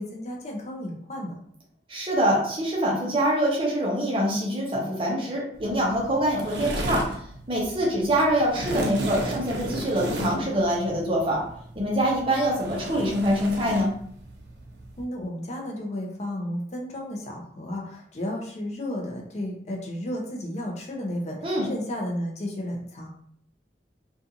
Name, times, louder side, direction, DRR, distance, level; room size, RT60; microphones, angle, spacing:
voice 1, 0.0-1.3 10.2-10.5 15.0-23.1, left 1 dB, 40° left, 0 dB, 0.5 m, -33 dB
voice 2, 1.9-11.4 11.8-13.9 21.4-21.7, equal, 30° right, -2 dB, 0.6 m, -25 dB
sound 1, 5.5-15.0, right 1 dB, 80° right, 0.5 m, -34 dB
2.5 x 2.3 x 2.7 m, 0.64 s
head